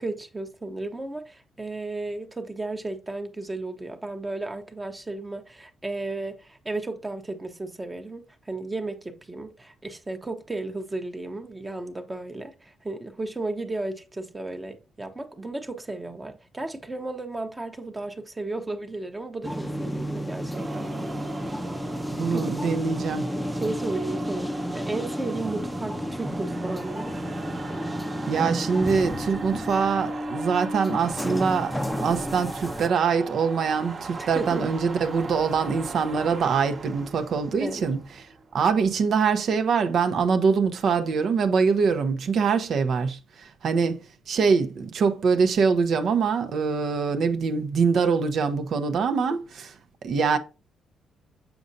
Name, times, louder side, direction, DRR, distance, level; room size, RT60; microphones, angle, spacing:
voice 1, 0.0-20.9 22.3-22.5 23.6-27.1 34.2-34.7 37.6-37.9, right 2 dB, 20° right, 0.9 m, -34 dB
sound 1, 19.4-32.9, equal, 5° left, 0.6 m, -31 dB
sound 2, 20.5-39.1, right 3 dB, 40° right, 1.1 m, -40 dB
voice 2, 22.1-23.3 28.3-38.0 38.5-49.7 50.0-50.4, right 5 dB, 60° right, 0.8 m, -24 dB
7.0 x 5.2 x 2.7 m
cardioid pair, 90°, 0 cm